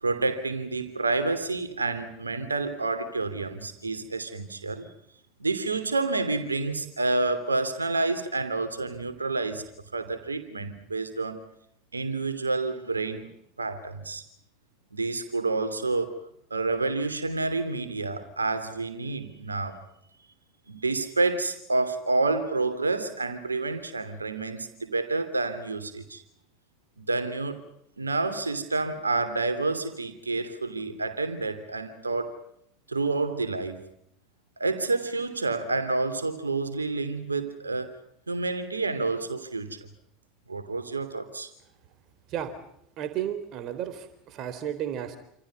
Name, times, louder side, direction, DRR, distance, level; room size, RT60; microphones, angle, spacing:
voice 1, 0.0-4.9 5.4-9.7 9.9-11.5 11.9-13.3 13.6-14.2 14.9-16.2 16.5-19.8 20.7-26.2 27.0-27.6 28.0-32.4 32.9-33.8 34.6-38.0 38.3-39.8 40.5-41.5, right 3 dB, 85° right, 3.0 m, -29 dB
voice 2, 43.0-45.2, right 10 dB, 45° right, 3.9 m, -33 dB
28.0 x 27.5 x 5.4 m
figure-of-eight pair, 75°, 0 cm